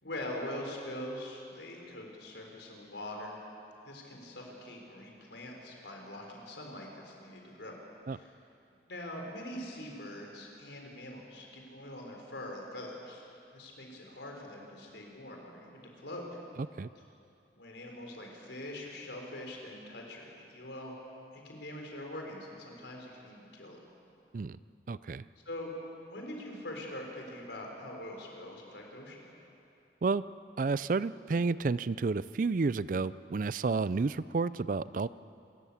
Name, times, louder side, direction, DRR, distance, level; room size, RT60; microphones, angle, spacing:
voice 1, 0.0-3.4 3.8-7.7 8.1-8.3 8.9-13.2 13.5-16.3 17.5-21.0 21.3-23.8 25.4-25.7 26.1-29.3, left 1 dB, 85° left, 1 dB, 4.3 m, -43 dB
voice 2, 24.9-25.2 30.0-30.2 30.6-35.1, right 4 dB, 50° right, 17 dB, 0.4 m, -30 dB
27.0 x 14.0 x 8.6 m, 2.6 s
head